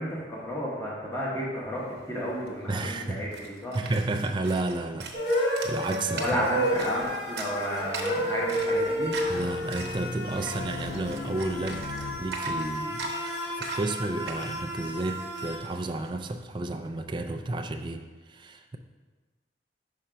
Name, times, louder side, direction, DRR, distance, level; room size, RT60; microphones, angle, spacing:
voice 1, 0.0-3.8 6.1-9.2, equal, 15° left, -5 dB, 1.2 m, -32 dB
sound 1, 2.0-2.1 2.3-16.1, right 4 dB, 70° right, 0.8 m, -42 dB
voice 2, 2.7-3.3 3.7-6.4 9.3-11.8 12.2-13.0 13.5-18.8, right 2 dB, 25° right, 5 dB, 0.3 m, -32 dB
sound 2, 5.1-15.6, equal, 90° left, 1.6 m, -31 dB
Race car auto racing, 8.4-12.7, left 3 dB, 50° left, 0.3 m, -42 dB
5.7 x 4.3 x 5.0 m, 1.3 s
head